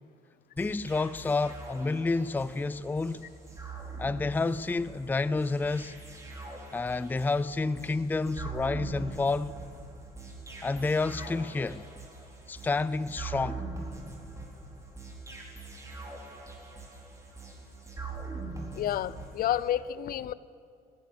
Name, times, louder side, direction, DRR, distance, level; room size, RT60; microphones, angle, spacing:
voice 1, 0.6-3.3 4.0-5.9 6.7-9.6 10.6-11.8 12.5-13.6, left 3 dB, 10° left, 0.4 m, -29 dB
sound 1, 0.6-19.7, right 3 dB, 20° right, 4.5 m, -43 dB
voice 2, 18.7-20.3, left 11 dB, 60° left, 0.7 m, -30 dB
27.5 x 16.0 x 6.9 m
cardioid pair, 110°, 17 cm